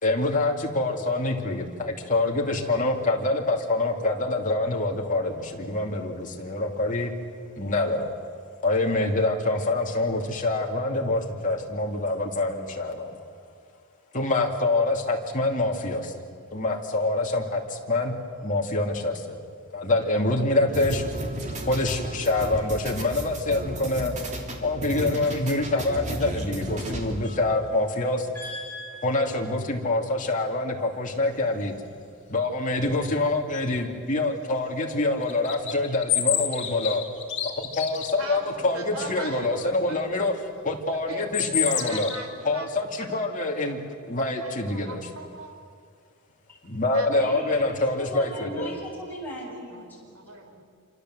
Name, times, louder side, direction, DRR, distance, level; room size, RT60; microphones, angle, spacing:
voice 1, 0.0-7.1 7.6-8.1 8.6-13.2 14.1-16.1 16.5-18.1 18.4-19.4 19.7-21.0 21.6-24.1 24.6-28.3 29.0-31.7 32.3-37.0 37.4-40.3 40.6-42.1 42.4-45.0 46.6-48.8, left 2 dB, 40° left, 0 dB, 2.8 m, -26 dB
sound 1, 20.7-27.4, right 1 dB, 35° right, 3.2 m, -33 dB
voice 2, 28.3-29.3 47.1-50.1, equal, 10° left, -5 dB, 7.2 m, -38 dB
sound 2, 35.2-38.1 41.1-42.2, left 10 dB, 60° left, 2.7 m, -28 dB
voice 3, 38.2-40.0 41.1-42.7 43.1-43.2 44.3-45.6 46.9-47.3 49.5-50.6, right 2 dB, 70° right, 4 dB, 3.7 m, -40 dB
27.0 x 26.0 x 7.9 m, 2.2 s
head